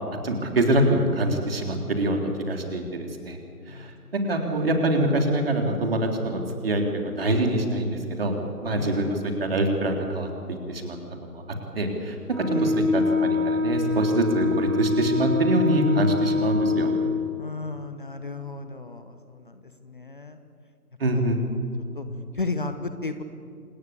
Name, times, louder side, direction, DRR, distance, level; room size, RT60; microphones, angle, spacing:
voice 1, 0.2-2.2 2.5-3.4 3.7-8.3 8.6-10.3 10.7-11.4 11.8-16.9 21.0-21.4, right 1 dB, 35° right, 3 dB, 3.6 m, -25 dB
voice 2, 3.7-4.1 5.6-5.9 8.7-9.2 12.5-12.8 17.4-20.4 21.9-22.1 22.3-23.2, left 3 dB, 30° left, 8 dB, 1.1 m, -34 dB
Wind instrument woodwind instrument, 12.3-17.2, left 4 dB, ahead, 2.9 m, -25 dB
27.0 x 19.0 x 8.6 m, 2.4 s
figure-of-eight pair, 155°, 47 cm